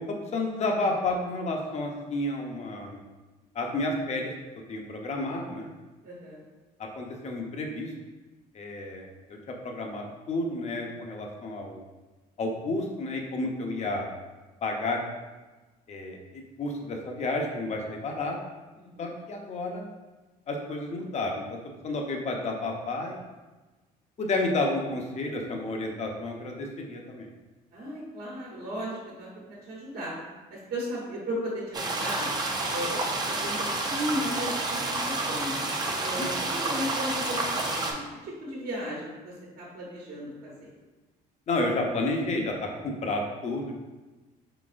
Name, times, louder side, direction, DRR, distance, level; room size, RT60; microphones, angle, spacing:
voice 1, 0.0-3.0 3.5-4.3 4.7-5.7 7.0-7.9 8.5-9.1 9.6-11.8 12.4-14.1 14.6-15.0 15.9-18.4 19.0-19.9 20.5-21.6 21.8-23.3 24.2-27.3 36.2-36.3 41.5-43.7, left 2 dB, 40° left, 1 dB, 0.7 m, -31 dB
voice 2, 6.0-6.4 18.8-19.1 27.7-29.3 29.7-30.1 30.5-32.3 32.7-33.6 33.9-35.6 36.0-40.7, equal, 65° right, -5 dB, 1.2 m, -35 dB
sound 1, 31.7-37.9, right 2 dB, 25° right, 0.6 m, -29 dB
4.1 x 3.9 x 2.5 m, 1.2 s
cardioid pair, 110°, 17 cm